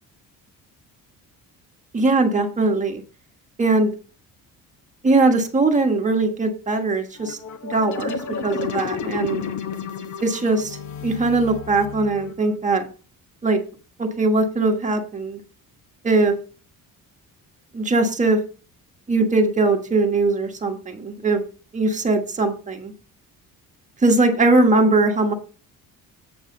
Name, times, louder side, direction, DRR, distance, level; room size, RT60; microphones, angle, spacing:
voice 1, 1.9-3.0 3.6-3.9 5.0-7.4 7.7-8.2 8.4-9.4 10.2-10.8 11.0-12.8 13.4-13.6 14.0-15.4 16.0-16.3 17.7-18.4 19.1-21.4 21.7-22.9 24.0-25.3, right 3 dB, 20° right, 3 dB, 1.4 m, -20 dB
sound 1, 7.2-12.6, left 6 dB, 60° left, 1.0 m, -31 dB
8.0 x 7.3 x 3.8 m, 0.36 s
cardioid pair, 155°, 34 cm